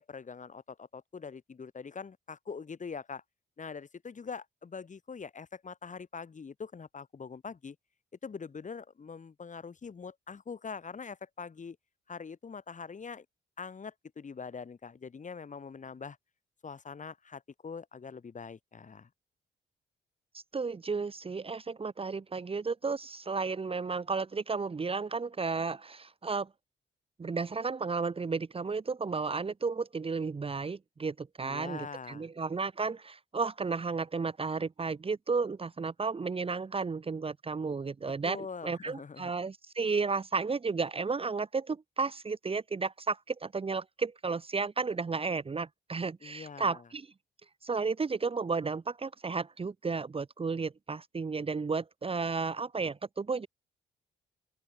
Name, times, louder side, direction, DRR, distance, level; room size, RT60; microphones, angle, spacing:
voice 1, 0.0-3.2 3.6-7.8 8.2-11.8 12.1-13.3 13.6-16.2 16.6-19.1 31.4-32.3 38.2-39.3 46.2-46.8, left 5 dB, 45° left, 6.0 m, -43 dB
voice 2, 20.3-26.5 27.2-47.1 47.6-53.5, right 4 dB, 30° right, 1.2 m, -33 dB
open air
cardioid pair, 80°, 18 cm